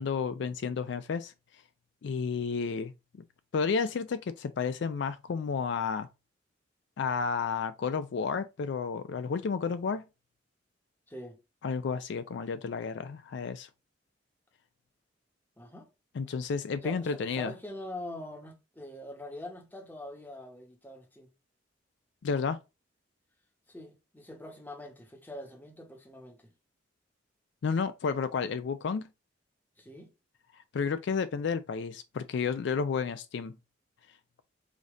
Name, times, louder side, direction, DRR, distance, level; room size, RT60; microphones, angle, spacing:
voice 1, 0.0-1.3 2.0-2.9 3.5-6.1 7.0-10.0 11.6-13.7 16.1-17.5 22.2-22.6 27.6-29.1 30.7-33.6, left 5 dB, 70° left, 0.4 m, -31 dB
voice 2, 11.1-11.4 15.6-15.9 16.8-21.3 23.7-26.5 29.8-30.1, left 1 dB, 10° left, 1.1 m, -44 dB
5.1 x 2.7 x 3.6 m
head